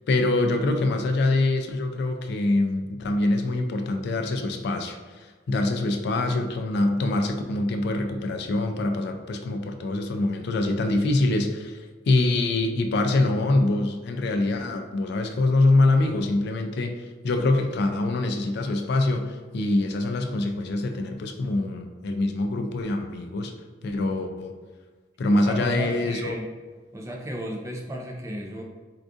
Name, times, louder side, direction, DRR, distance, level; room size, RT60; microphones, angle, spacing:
voice 1, 0.1-23.5 23.8-24.5 25.2-26.4, left 2 dB, 55° left, 5 dB, 0.3 m, -24 dB
voice 2, 25.3-26.5 26.9-28.6, equal, 15° right, 0 dB, 0.4 m, -33 dB
4.5 x 2.4 x 2.5 m, 1.4 s
head